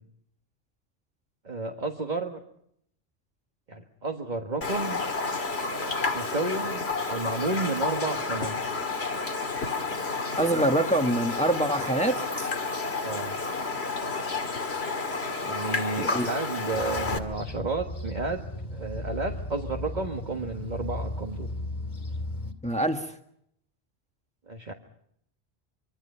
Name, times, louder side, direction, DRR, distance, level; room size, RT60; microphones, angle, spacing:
voice 1, 1.4-2.4 3.7-5.0 6.1-8.6 13.0-13.4 15.4-18.4 18.7-21.5 24.5-24.7, right 3 dB, 45° right, 2 dB, 1.8 m, -31 dB
Raindrop, 4.6-17.2, left 3 dB, 80° left, 2.2 m, -30 dB
voice 2, 10.4-12.5 16.0-16.3 22.6-23.1, right 1 dB, 5° left, 5 dB, 1.5 m, -25 dB
sound 1, 16.7-22.5, left 1 dB, 45° left, 2.4 m, -36 dB
25.0 x 25.0 x 5.7 m, 0.72 s
omnidirectional pair, 1.1 m